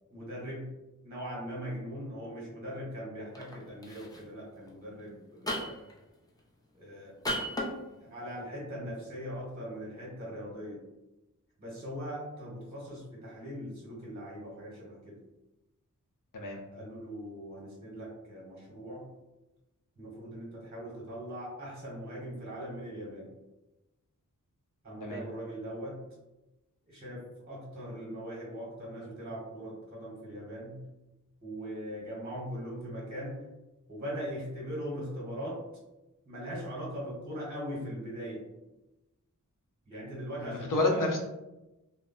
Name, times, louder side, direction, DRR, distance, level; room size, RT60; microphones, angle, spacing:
voice 1, 0.1-0.7 1.0-5.9 6.7-7.2 7.9-10.8 11.6-15.2 16.7-19.1 20.0-23.3 24.8-26.0 26.9-30.8 31.4-33.4 33.9-35.6 36.3-38.4 39.9-41.1, equal, 30° right, -5 dB, 1.0 m, -40 dB
sound 1, 3.3-3.5 3.8-4.2 5.5-5.9 7.2-7.7, equal, 10° left, 0.5 m, -33 dB
voice 2, 40.4-41.2, left 2 dB, 80° left, 1 dB, 0.6 m, -29 dB
2.1 x 2.0 x 3.7 m, 1.0 s
wide cardioid pair, 80°, 31 cm